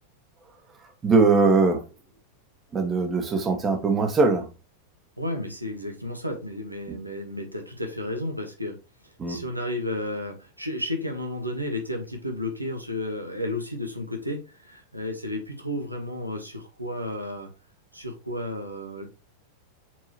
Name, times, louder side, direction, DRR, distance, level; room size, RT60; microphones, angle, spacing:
voice 1, 1.0-1.8 2.7-4.4 9.2-9.4, right 4 dB, 20° right, 1.8 m, -21 dB
voice 2, 5.2-8.7 9.0-17.5 17.9-19.0, left 1 dB, 85° right, 1.5 m, -32 dB
7.9 x 4.6 x 3.1 m
figure-of-eight pair, 90°, 0 cm